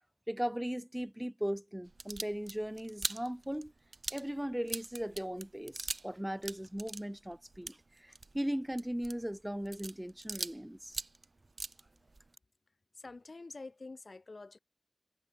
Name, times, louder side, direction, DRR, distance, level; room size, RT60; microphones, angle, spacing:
voice 1, 0.3-3.7 4.1-11.0, equal, 10° right, 1.0 m, -38 dB
sound 1, 1.9-6.1 6.4-10.6 10.9-12.3, right 3 dB, 80° right, 1.5 m, -42 dB
voice 2, 12.9-14.6, left 3 dB, 90° left, 3.7 m, -47 dB
wide cardioid pair, 50°, 0 cm